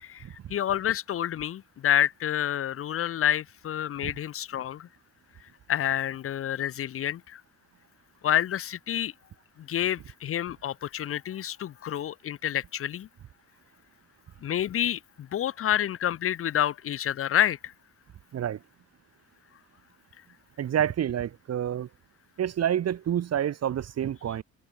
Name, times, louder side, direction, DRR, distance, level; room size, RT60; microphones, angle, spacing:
voice 1, 0.0-4.9 5.7-7.4 8.2-9.1 9.6-13.1 14.4-17.7, left 11 dB, 45° left, 0.6 m, -28 dB
voice 2, 20.6-21.9 22.4-24.4, right 10 dB, 55° right, 1.3 m, -28 dB
cardioid pair, 90°, 30 cm